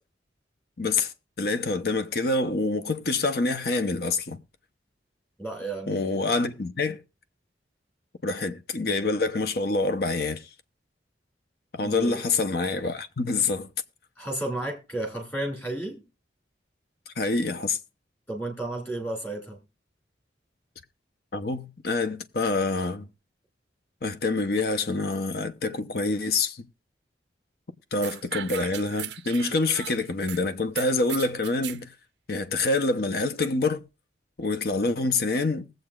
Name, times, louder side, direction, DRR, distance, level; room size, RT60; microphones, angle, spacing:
voice 1, 0.8-4.4 5.9-7.0 8.2-10.5 11.7-13.7 17.1-17.8 21.3-23.1 24.0-26.6 27.9-31.9 32.3-33.8 34.4-35.7, left 3 dB, 55° left, 0.7 m, -26 dB
voice 2, 5.4-6.2 11.8-12.2 14.2-16.0 18.3-19.6, right 1 dB, 10° left, 2.3 m, -33 dB
sound 1, 28.0-30.4 30.8-31.8, right 11 dB, 70° right, 0.4 m, -37 dB
20.5 x 7.7 x 2.4 m
head